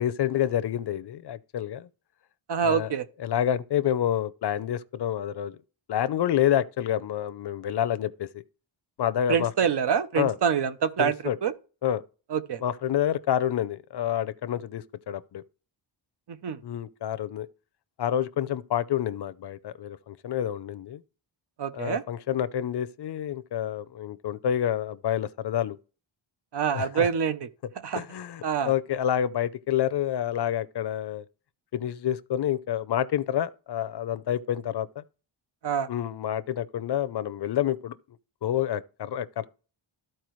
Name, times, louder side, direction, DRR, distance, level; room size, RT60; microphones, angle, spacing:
voice 1, 0.0-1.9 2.6-2.9 3.2-5.6 5.9-8.4 9.0-9.5 10.2-10.4 11.0-11.4 11.8-12.0 12.6-15.4 16.6-17.5 18.0-21.0 21.7-25.8 26.7-27.1 27.9-31.2 31.7-35.0 35.9-37.9 38.4-39.5, left 10 dB, 55° left, 0.6 m, -28 dB
voice 2, 2.5-3.1 9.3-11.2 11.4-11.5 12.3-12.6 16.3-16.6 21.6-22.0 26.5-27.5 27.8-28.0 28.4-28.7 35.6-35.9, right 7 dB, 55° right, 0.8 m, -26 dB
13.5 x 4.5 x 3.1 m
wide cardioid pair, 155°, 49 cm